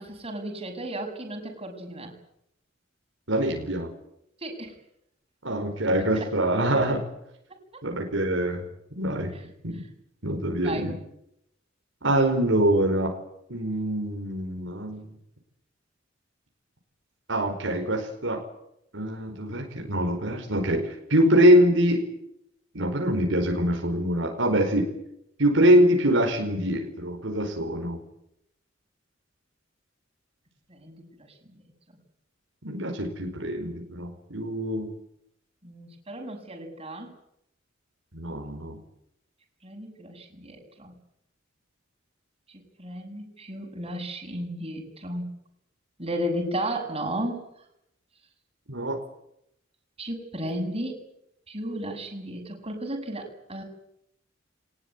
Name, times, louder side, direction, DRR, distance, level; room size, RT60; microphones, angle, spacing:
voice 1, 0.0-2.1 4.4-4.7 6.1-6.3 7.7-7.8 10.6-10.9 30.7-31.6 35.6-37.1 39.6-40.9 42.5-45.3 46.0-47.5 50.0-51.0 51.5-53.6, right 1 dB, 30° right, 2 dB, 6.7 m, -34 dB
voice 2, 3.3-3.9 5.4-7.0 7.8-8.6 8.9-9.3 9.6-9.8 10.2-11.0 12.0-13.1 13.5-15.1 17.3-18.4 18.9-22.0 22.7-24.9 25.4-28.0 32.6-34.9 38.1-38.8 48.7-49.0, right 1 dB, 70° right, 2 dB, 4.8 m, -24 dB
22.0 x 20.0 x 9.8 m, 0.78 s
head